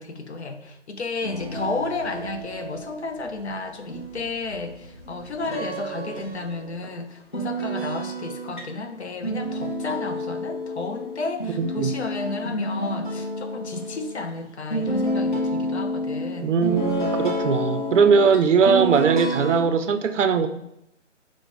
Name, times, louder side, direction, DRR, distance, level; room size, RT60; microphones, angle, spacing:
voice 1, 0.0-16.5, left 3 dB, 60° left, 6 dB, 0.7 m, -32 dB
sound 1, 1.2-3.6 3.9-6.9 7.3-14.4 14.7-19.6, equal, 40° left, 1.0 m, -30 dB
voice 2, 11.6-11.9 16.4-20.5, right 5 dB, 70° right, 9 dB, 0.5 m, -20 dB
5.1 x 2.1 x 4.6 m, 0.82 s
hypercardioid pair, 175°, 37 cm